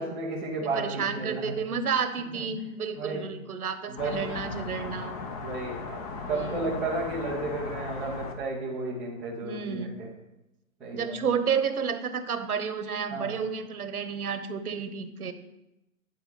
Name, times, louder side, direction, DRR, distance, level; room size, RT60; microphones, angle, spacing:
voice 1, 0.0-1.7 2.3-2.4 2.9-3.3 3.9-4.5 5.4-6.0 6.3-10.1 10.8-11.1 13.1-13.4, right 2 dB, ahead, -10 dB, 0.4 m, -33 dB
voice 2, 0.6-5.1 6.3-6.8 9.4-10.0 10.9-15.3, right 6 dB, 80° right, 10 dB, 1.1 m, -31 dB
sound 1, 4.0-8.3, left 4 dB, 25° left, 0.7 m, -37 dB
9.6 x 4.5 x 6.6 m, 0.92 s
hypercardioid pair, 140°, 43 cm